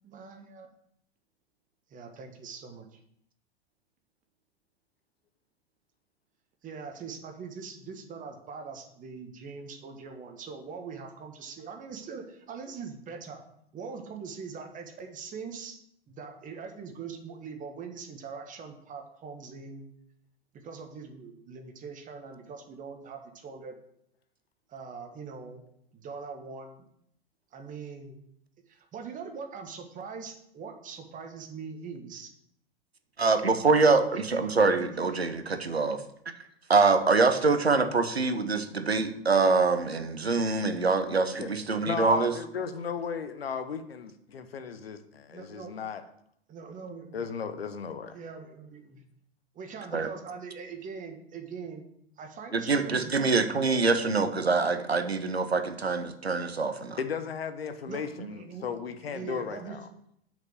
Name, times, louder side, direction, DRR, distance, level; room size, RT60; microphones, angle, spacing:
voice 1, 0.0-0.7 1.9-2.8 6.6-13.4 13.7-15.8 16.1-19.9 20.5-23.7 24.7-25.6 25.9-26.8 27.5-28.2 28.7-32.3 34.4-34.5 34.8-35.2 45.3-45.7 46.5-47.3 48.1-49.0 49.5-51.8 52.2-53.4 57.9-58.0 58.3-58.6 59.1-59.8, right 5 dB, 25° right, 4 dB, 1.4 m, -42 dB
voice 2, 33.2-36.0 36.7-42.3 49.9-50.1 52.5-57.0 58.2-58.3, right 4 dB, 90° right, 9 dB, 0.8 m, -25 dB
voice 3, 41.8-46.0 47.1-48.2 57.0-59.9, left 6 dB, 75° left, 10 dB, 0.9 m, -35 dB
6.3 x 5.3 x 6.6 m, 0.73 s
figure-of-eight pair, 95°, 31 cm